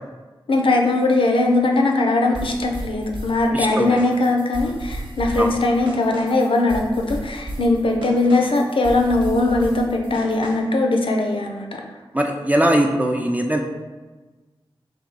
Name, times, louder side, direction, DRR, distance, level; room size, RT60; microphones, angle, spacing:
voice 1, 0.5-11.8, left 2 dB, 65° left, 2 dB, 0.5 m, -20 dB
sound 1, 2.3-10.8, right 1 dB, 60° right, 0.8 m, -33 dB
voice 2, 3.5-4.0 5.4-5.5 12.1-13.6, right 1 dB, 15° right, 2 dB, 0.3 m, -20 dB
3.5 x 2.7 x 3.9 m, 1.3 s
wide cardioid pair, 70°, 9 cm